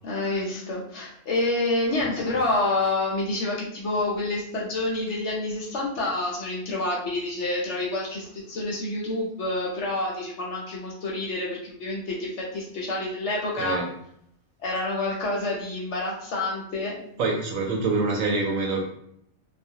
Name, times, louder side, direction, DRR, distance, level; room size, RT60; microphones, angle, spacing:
voice 1, 0.0-13.8 14.6-17.0, left 2 dB, 65° left, -4 dB, 0.8 m, -28 dB
voice 2, 17.2-18.8, right 3 dB, 70° right, 1 dB, 0.9 m, -25 dB
2.4 x 2.0 x 2.7 m, 0.70 s
omnidirectional pair, 1.5 m